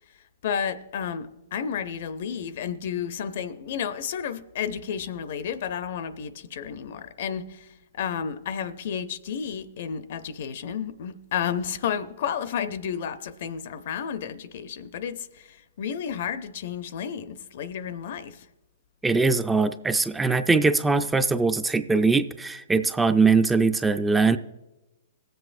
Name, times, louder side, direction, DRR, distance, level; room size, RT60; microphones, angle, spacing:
voice 1, 0.4-7.7 7.9-18.5, left 8 dB, 60° left, 0.6 m, -32 dB
voice 2, 19.0-24.4, right 4 dB, 10° right, 0.3 m, -21 dB
19.5 x 7.8 x 2.5 m
hypercardioid pair, 140°, 0 cm